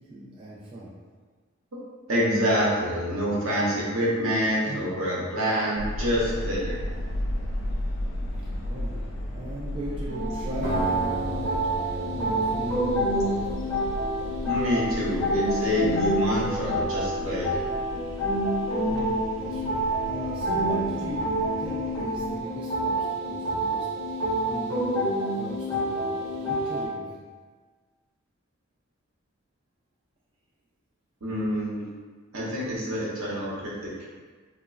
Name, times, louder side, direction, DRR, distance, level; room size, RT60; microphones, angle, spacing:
voice 1, 0.1-0.9 8.4-9.0 9.3-11.5 11.8-13.3 18.8-21.2 21.6-27.2, right 2 dB, 25° right, -8 dB, 0.3 m, -38 dB
voice 2, 2.1-6.8 14.4-17.6 31.2-31.9 32.3-33.9, equal, 80° right, -6 dB, 0.8 m, -27 dB
sound 1, 5.8-22.4, equal, 60° left, 0.3 m, -35 dB
sound 2, 10.1-26.9, right 1 dB, 15° left, 0.6 m, -28 dB
Acoustic guitar, 10.6-13.8, right 1 dB, 50° right, 0.9 m, -34 dB
3.0 x 2.0 x 2.4 m, 1.5 s
head